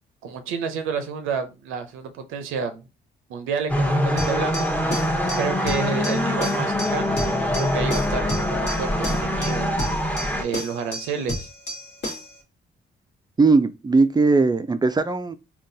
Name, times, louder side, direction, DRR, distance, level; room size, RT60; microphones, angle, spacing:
voice 1, 0.2-2.8 3.3-4.7 5.4-9.7 10.4-11.5, right 6 dB, 90° right, 0.5 m, -30 dB
sound 1, 3.7-10.4, left 1 dB, 5° left, 0.8 m, -24 dB
sound 2, 4.2-12.4, left 1 dB, 55° left, 1.3 m, -33 dB
voice 2, 13.4-15.4, right 3 dB, 20° right, 0.3 m, -19 dB
3.7 x 2.3 x 2.6 m
supercardioid pair, 60°, 20 cm